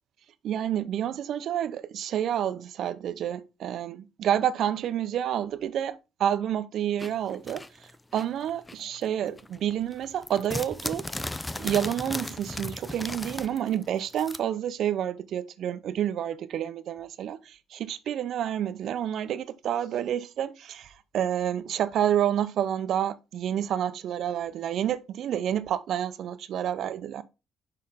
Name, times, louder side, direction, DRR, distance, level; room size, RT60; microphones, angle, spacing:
voice 1, 0.4-11.0 11.6-27.2, right 10 dB, 60° right, 0.7 m, -29 dB
sound 1, 7.0-9.1 9.4-14.4, left 2 dB, 10° left, 0.4 m, -36 dB
6.7 x 5.4 x 3.6 m
cardioid pair, 125°, 0 cm